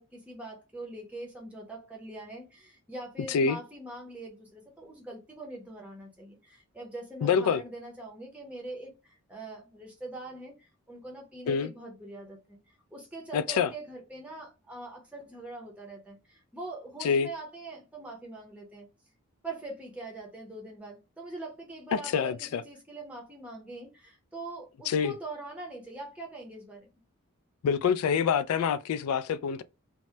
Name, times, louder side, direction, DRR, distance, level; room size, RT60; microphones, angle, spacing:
voice 1, 0.0-12.6 12.9-18.9 19.4-26.9, right 2 dB, 5° right, 0.6 m, -43 dB
voice 2, 7.2-7.6 11.5-11.7 13.3-13.7 17.0-17.3 21.9-22.6 24.9-25.1 27.6-29.6, left 6 dB, 85° left, 0.3 m, -26 dB
2.7 x 2.0 x 3.1 m
head